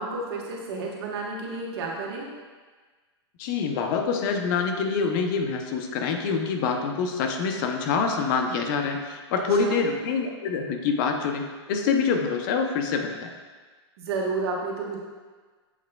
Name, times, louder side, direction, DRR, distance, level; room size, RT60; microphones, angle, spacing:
voice 1, 0.0-2.3 9.6-9.8 14.0-15.0, right 3 dB, 60° right, -1 dB, 1.1 m, -31 dB
voice 2, 3.4-13.3, left 5 dB, 45° left, 4 dB, 0.6 m, -26 dB
7.2 x 3.2 x 2.2 m, 1.4 s
hypercardioid pair, 135°, 15 cm